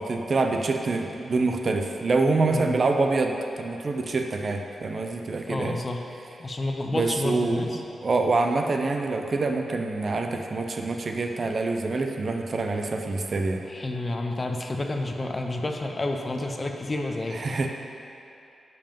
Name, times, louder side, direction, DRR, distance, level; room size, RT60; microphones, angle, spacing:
voice 1, 0.0-5.8 6.9-13.6 17.3-17.7, right 3 dB, 40° right, 3 dB, 0.6 m, -26 dB
voice 2, 5.4-6.0 6.4-7.8 13.7-17.4, left 2 dB, 25° left, 3 dB, 0.7 m, -30 dB
10.5 x 5.5 x 5.3 m, 2.8 s
wide cardioid pair, 140°, 0 cm